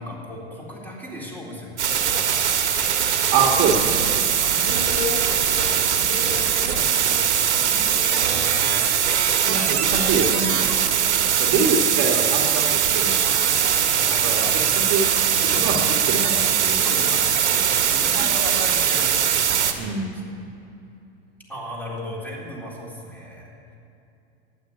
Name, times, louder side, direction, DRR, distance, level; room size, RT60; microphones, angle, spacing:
voice 1, 0.0-3.3 4.4-8.9 9.2-9.4 10.9-11.9 13.2-15.0 15.5-15.9 16.7-20.3 21.5-23.8, left 1 dB, 5° left, -4 dB, 3.8 m, -36 dB
sound 1, 1.8-19.7, right 8 dB, 85° right, 1.6 m, -21 dB
voice 2, 3.3-4.0 9.5-10.7 11.4-13.3 14.2-14.4 14.7-15.1 15.4-15.7 16.1-17.1 18.2-18.3 19.8-20.2, right 4 dB, 45° right, 2 dB, 1.8 m, -25 dB
12.0 x 10.0 x 10.0 m, 2.7 s
hypercardioid pair, 110°, 33 cm